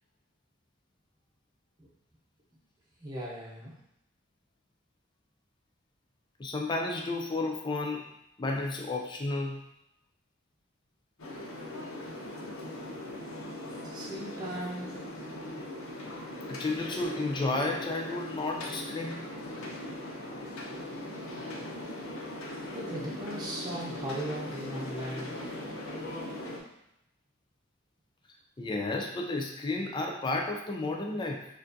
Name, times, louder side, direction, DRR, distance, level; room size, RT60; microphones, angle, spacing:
voice 1, 3.0-3.7 13.8-15.0 22.7-25.3, right 1 dB, 20° right, -6 dB, 0.8 m, -37 dB
voice 2, 6.4-8.0 8.4-9.6 16.5-19.3 28.6-31.5, left 2 dB, 20° left, 1 dB, 0.4 m, -32 dB
sound 1, 11.2-26.6, left 1 dB, 85° left, 0.9 m, -40 dB
6.7 x 2.5 x 2.6 m, 0.83 s
head